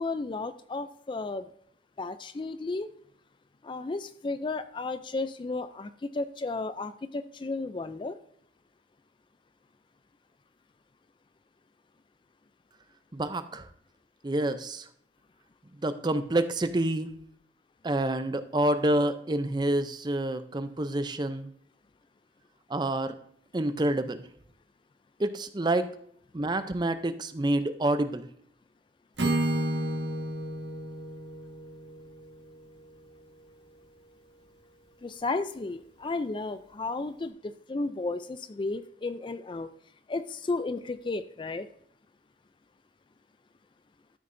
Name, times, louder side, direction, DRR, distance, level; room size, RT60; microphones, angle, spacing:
voice 1, 0.0-1.5 2.0-2.9 3.6-8.2 35.0-39.7 40.1-41.7, left 3 dB, 25° left, 12 dB, 0.4 m, -33 dB
voice 2, 13.1-13.7 14.2-14.9 15.8-17.1 17.8-21.5 22.7-23.1 23.5-24.2 25.2-25.9 26.3-28.3, right 1 dB, 25° right, 11 dB, 0.5 m, -28 dB
Acoustic guitar / Strum, 29.2-33.1, right 1 dB, 80° right, 1.6 m, -32 dB
13.5 x 6.6 x 2.6 m, 0.68 s
head